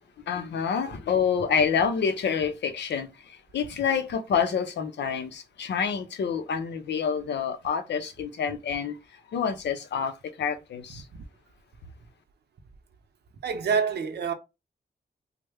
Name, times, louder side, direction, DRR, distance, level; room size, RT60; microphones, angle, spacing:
voice 1, 0.3-11.1, left 6 dB, 90° left, 0.6 m, -28 dB
voice 2, 10.9-11.2 13.4-14.3, right 6 dB, 70° right, 0.6 m, -27 dB
3.2 x 2.1 x 3.4 m
wide cardioid pair, 150°, 18 cm